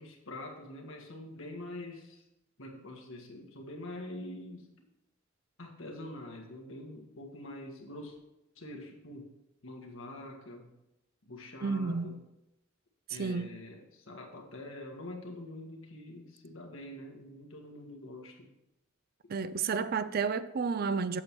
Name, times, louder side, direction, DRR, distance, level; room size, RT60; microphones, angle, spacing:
voice 1, 0.0-2.2 2.6-4.7 5.6-8.2 8.5-9.3 9.6-10.7 11.2-12.2 13.1-18.5, left 1 dB, 75° left, 1.6 m, -45 dB
voice 2, 11.6-12.2 13.1-13.5 19.3-21.2, right 5 dB, 45° right, 0.4 m, -31 dB
8.1 x 6.9 x 4.6 m
head